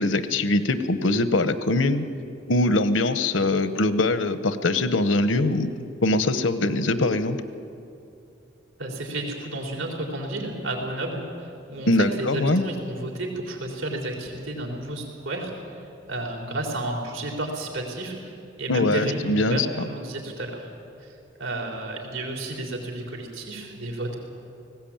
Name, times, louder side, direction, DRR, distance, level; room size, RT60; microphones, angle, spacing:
voice 1, 0.0-2.1 2.5-5.7 6.0-7.4 11.9-12.6 18.7-19.7, left 2 dB, 75° left, 11 dB, 1.0 m, -22 dB
voice 2, 8.8-15.8 16.1-20.7 21.0-21.1 21.4-24.2, right 1 dB, 85° right, 0 dB, 4.1 m, -32 dB
19.0 x 16.5 x 8.8 m, 2.6 s
head